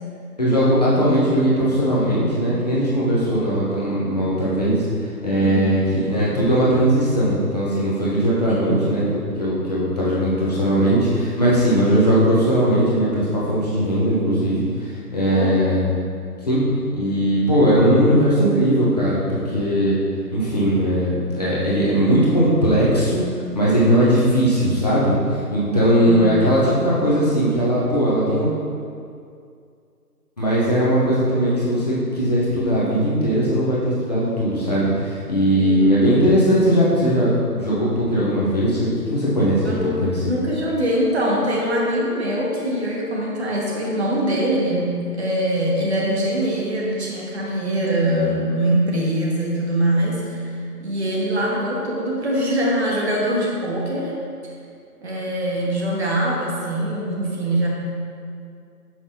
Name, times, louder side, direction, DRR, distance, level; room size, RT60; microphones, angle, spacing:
voice 1, 0.4-4.9 5.2-15.8 16.5-16.6 16.9-20.0 20.3-23.2 23.5-28.5 30.4-40.3, equal, 25° left, -8 dB, 0.8 m, -19 dB
voice 2, 15.3-15.8 25.7-26.3 35.5-35.9 39.6-54.1 55.0-57.7, right 1 dB, 40° right, -3 dB, 1.1 m, -23 dB
5.9 x 5.8 x 2.8 m, 2.3 s
figure-of-eight pair, 150°, 48 cm